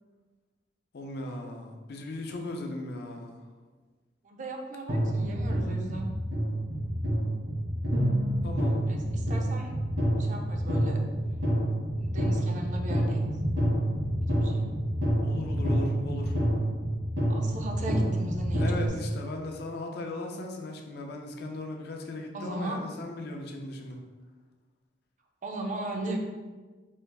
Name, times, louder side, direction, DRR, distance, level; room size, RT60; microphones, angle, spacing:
voice 1, 0.9-3.4 8.4-8.8 15.2-16.4 18.6-24.0, left 2 dB, 60° left, 2 dB, 0.4 m, -37 dB
voice 2, 4.2-6.1 8.9-9.7 10.2-11.0 12.0-13.3 14.3-14.7 17.3-18.9 22.3-22.8 25.4-26.2, right 1 dB, 45° right, 2 dB, 0.4 m, -37 dB
sound 1, 4.9-18.9, equal, 70° right, 1.2 m, -28 dB
3.1 x 2.4 x 3.3 m, 1.3 s
head